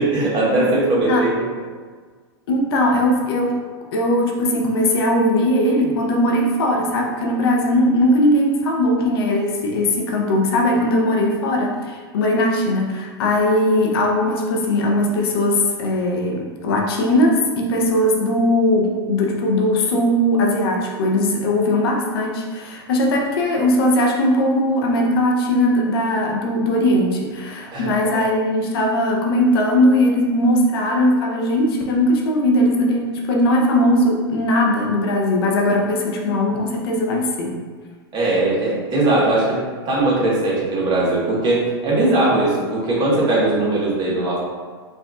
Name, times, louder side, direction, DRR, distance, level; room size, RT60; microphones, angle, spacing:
voice 1, 0.0-1.4 27.7-27.9 38.1-39.6 39.8-44.4, right 2 dB, 35° right, -6 dB, 1.4 m, -19 dB
voice 2, 2.5-3.6 3.9-37.6, left 1 dB, 65° left, 0 dB, 0.7 m, -19 dB
4.7 x 2.5 x 2.4 m, 1.5 s
hypercardioid pair, 105°, 13 cm